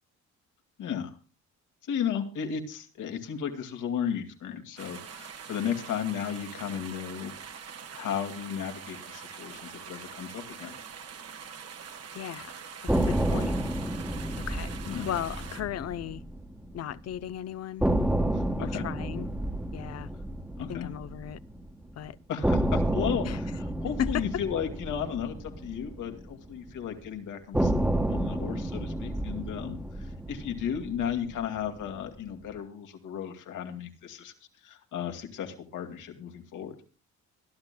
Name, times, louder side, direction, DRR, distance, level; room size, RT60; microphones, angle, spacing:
voice 1, 0.8-1.1 1.8-7.3 7.9-10.8 14.9-15.1 18.3-18.8 20.6-20.9 22.3-27.7 28.1-34.3 34.6-36.8, left 8 dB, 85° left, 2.3 m, -34 dB
sound 1, 4.8-15.6, right 7 dB, 55° right, 1.5 m, -44 dB
voice 2, 12.1-12.5 12.9-13.6 14.4-14.8 15.1-16.2 16.7-17.9 18.6-19.3 19.7-20.1 20.7-21.4 22.0-22.2 23.2-23.4 24.0-24.4, left 10 dB, 55° left, 0.7 m, -35 dB
sound 2, 12.9-17.0 17.2-17.3 17.8-21.9 22.4-26.8 27.5-31.9, right 1 dB, 5° right, 1.2 m, -30 dB
23.5 x 12.0 x 2.3 m
cardioid pair, 90°, 30 cm